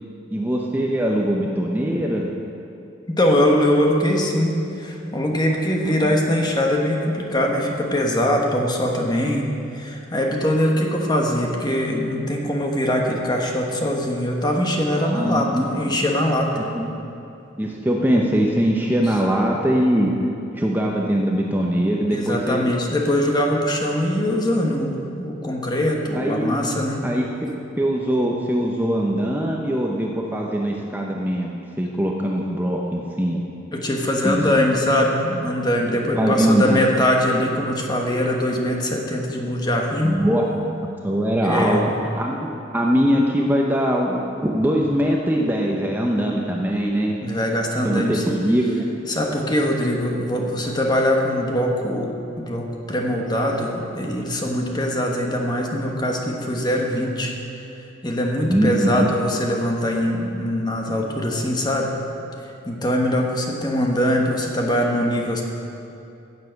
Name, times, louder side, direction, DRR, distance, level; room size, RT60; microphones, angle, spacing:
voice 1, 0.3-2.3 5.8-6.1 15.0-15.7 16.5-16.9 17.6-20.3 20.5-22.7 26.1-26.6 27.0-27.5 27.8-33.5 34.2-34.4 35.8-36.8 40.0-40.4 41.0-47.1 47.8-48.8 58.4-59.1, equal, 10° right, -1 dB, 0.7 m, -22 dB
voice 2, 3.1-16.5 22.1-27.0 33.7-40.2 41.4-41.9 47.2-48.4 49.1-57.3 58.0-62.0 62.6-65.4, left 1 dB, 20° left, 0 dB, 1.3 m, -22 dB
15.5 x 7.4 x 5.8 m, 2.7 s
head